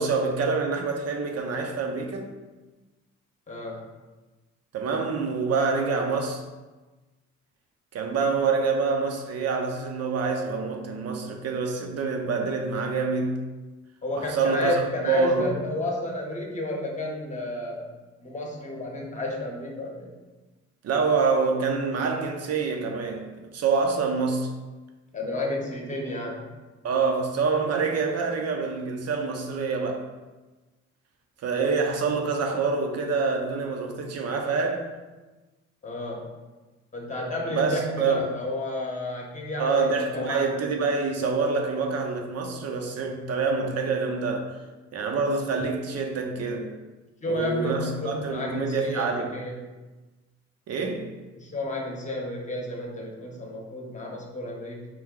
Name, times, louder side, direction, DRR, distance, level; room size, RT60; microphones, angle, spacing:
voice 1, 0.0-2.3 4.7-6.4 7.9-13.4 14.2-15.5 20.8-24.5 26.8-30.1 31.4-34.8 37.5-38.2 39.6-44.5 44.9-46.7 47.3-49.3 50.7-51.1, right 4 dB, 55° right, 0.7 m, -26 dB
voice 2, 3.5-3.8 14.0-17.9 18.2-20.1 25.1-26.5 35.8-36.3 36.9-40.4 47.2-49.6 51.3-54.9, left 1 dB, 25° left, 0.9 m, -31 dB
4.6 x 2.2 x 3.6 m
cardioid pair, 90°, 30 cm